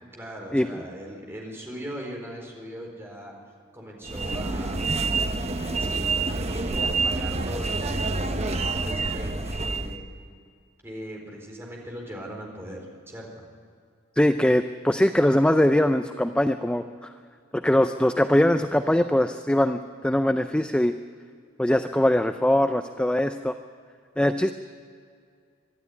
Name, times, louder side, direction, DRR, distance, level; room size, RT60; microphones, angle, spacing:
voice 1, 0.1-3.3 3.7-4.9 5.8-7.8 8.3-10.1 10.8-13.5, equal, 10° right, -1 dB, 4.2 m, -39 dB
sound 1, 4.0-10.0, right 3 dB, 30° right, 1.0 m, -27 dB
voice 2, 14.2-17.1 17.5-20.9 21.6-23.5 24.2-24.5, left 1 dB, 5° left, 8 dB, 0.4 m, -22 dB
24.0 x 12.5 x 9.7 m, 2.2 s
head